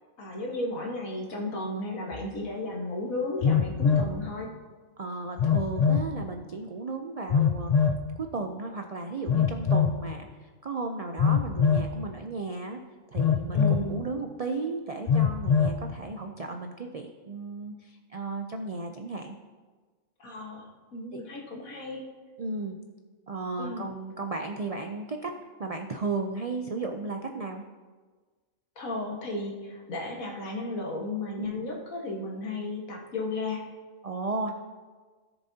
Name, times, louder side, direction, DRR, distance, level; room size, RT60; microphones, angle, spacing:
voice 1, 0.2-4.5 13.5-14.0 20.2-22.0 23.6-23.9 28.8-33.6, left 2 dB, 85° left, -1 dB, 1.9 m, -34 dB
Telephone, 2.1-2.2 3.4-4.1 5.4-6.1 7.3-8.0 9.3-10.0 11.2-11.9 13.2-13.9 15.1-15.8, left 6 dB, 65° left, 0.4 m, -23 dB
voice 2, 5.0-7.7 8.2-12.8 13.1-19.4 21.1-21.2 22.4-22.8 23.3-27.6 31.4-31.6 34.0-34.5, right 3 dB, 75° right, 4 dB, 0.3 m, -34 dB
17.0 x 7.0 x 2.8 m, 1.4 s
omnidirectional pair, 1.4 m